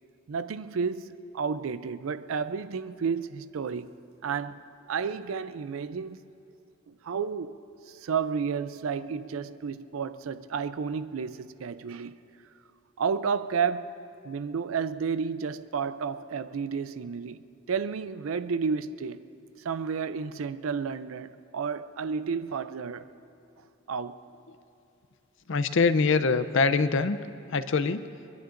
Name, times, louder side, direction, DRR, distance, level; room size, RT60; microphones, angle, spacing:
voice 1, 0.3-3.9 4.2-4.6 4.9-6.2 6.9-7.6 7.9-12.1 13.0-14.0 14.2-17.4 17.7-19.2 19.6-23.1 23.9-24.2, right 6 dB, 90° right, 0.4 m, -31 dB
voice 2, 25.5-27.2 27.5-28.0, left 4 dB, 65° left, 0.6 m, -23 dB
23.0 x 21.5 x 2.6 m
head